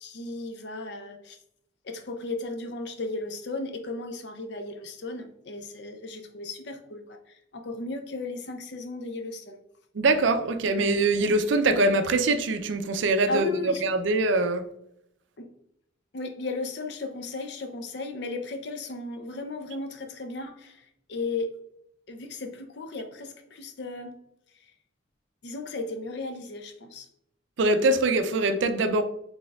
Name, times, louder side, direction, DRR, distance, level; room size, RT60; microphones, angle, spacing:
voice 1, 0.0-1.4 1.8-9.6 13.3-13.8 15.4-15.5 16.1-21.6 22.1-24.2 25.4-27.1, left 2 dB, 55° left, 0.5 m, -35 dB
voice 2, 10.0-14.7 27.6-29.0, right 2 dB, 70° right, 0.4 m, -23 dB
4.2 x 3.4 x 2.3 m
head